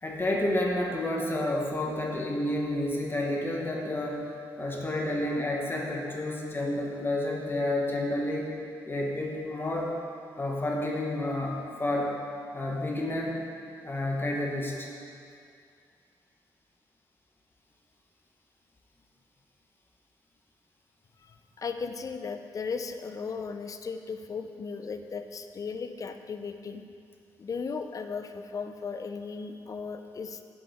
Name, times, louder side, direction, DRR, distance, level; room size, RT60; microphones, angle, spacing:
voice 1, 0.0-4.3 4.6-8.6 8.8-9.9 10.4-12.2 12.5-13.4 13.8-14.9, left 1 dB, 25° left, -1 dB, 1.3 m, -30 dB
voice 2, 21.2-26.8 27.4-30.4, left 5 dB, 45° left, 7 dB, 0.5 m, -36 dB
7.7 x 7.6 x 4.2 m, 2.4 s
cardioid pair, 85°, 8 cm